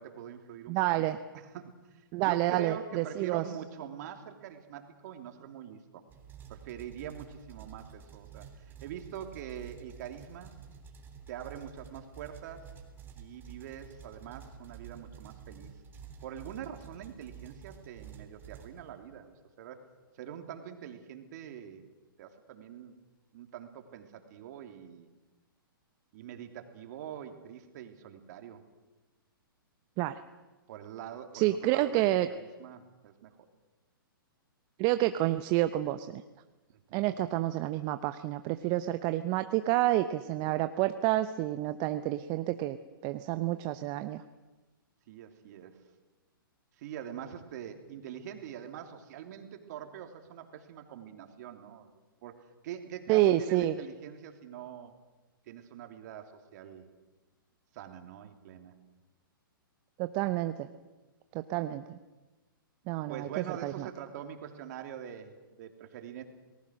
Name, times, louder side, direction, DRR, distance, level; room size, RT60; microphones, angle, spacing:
voice 1, 0.0-0.8 1.1-6.0 6.5-10.5 11.3-12.7 13.2-15.8 16.2-19.8 20.1-21.9 22.2-22.9 23.3-25.1 26.1-28.6 30.7-33.4 36.9-37.1 45.1-45.8 46.8-51.9 52.2-52.3 52.6-54.9 55.5-56.9 57.7-58.7 63.1-66.2, right 9 dB, 50° right, 5 dB, 3.0 m, -44 dB
voice 2, 0.7-1.2 2.1-3.4 30.0-30.2 31.3-32.3 34.8-36.2 36.9-42.8 43.0-44.2 53.1-53.8 60.0-60.7 61.3-62.0 62.9-63.9, right 15 dB, 35° right, 10 dB, 0.9 m, -29 dB
sound 1, 6.1-19.3, right 7 dB, 15° right, 3.2 m, -50 dB
29.5 x 19.0 x 6.4 m, 1.2 s
hypercardioid pair, 125°, 12 cm